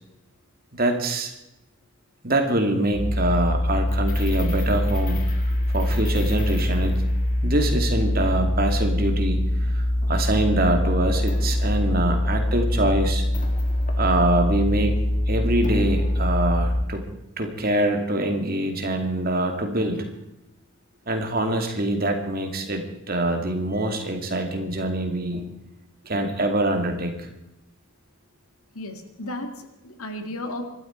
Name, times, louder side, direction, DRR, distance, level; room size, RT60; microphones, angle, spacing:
voice 1, 0.7-1.3 2.2-5.2 5.7-7.0 7.4-13.2 14.0-17.0 17.4-20.1 21.1-25.5 26.0-27.2, right 1 dB, 40° right, 4 dB, 2.4 m, -24 dB
sound 1, 2.9-16.9, left 1 dB, 35° left, 1.9 m, -23 dB
voice 2, 28.7-30.6, left 1 dB, 85° left, 6 dB, 2.4 m, -34 dB
25.0 x 13.0 x 4.5 m, 0.90 s
head